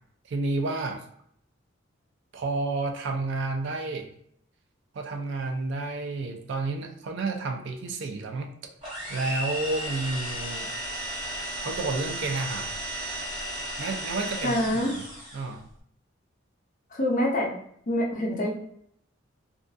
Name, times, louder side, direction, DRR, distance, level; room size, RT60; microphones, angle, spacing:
voice 1, 0.3-1.1 2.3-4.1 4.9-8.5 9.1-10.7 11.6-12.7 13.8-14.9 15.3-15.7, right 3 dB, 60° right, 4 dB, 0.4 m, -30 dB
sound 1, 8.8-15.5, right 1 dB, 25° right, 1.1 m, -34 dB
voice 2, 14.4-15.0 16.9-17.5 17.9-18.5, left 1 dB, 40° left, -1 dB, 0.5 m, -25 dB
2.5 x 2.3 x 2.3 m, 0.69 s
head